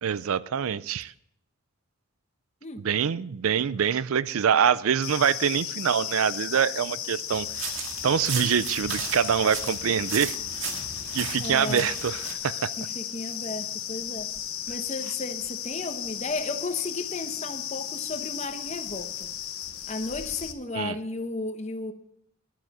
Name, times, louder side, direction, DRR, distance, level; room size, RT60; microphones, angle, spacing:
voice 1, 0.0-1.1 2.8-7.5 8.0-10.4 11.1-12.7 20.8-21.0, right 7 dB, 85° right, 18 dB, 0.5 m, -25 dB
sound 1, 5.0-20.5, left 10 dB, 85° left, 1.1 m, -35 dB
sound 2, 7.3-12.3, right 6 dB, 65° right, 1.9 m, -36 dB
voice 2, 11.4-11.9 12.8-14.3 14.7-19.3 19.9-21.9, left 3 dB, 30° left, 8 dB, 1.0 m, -34 dB
11.5 x 9.0 x 6.6 m, 0.75 s
head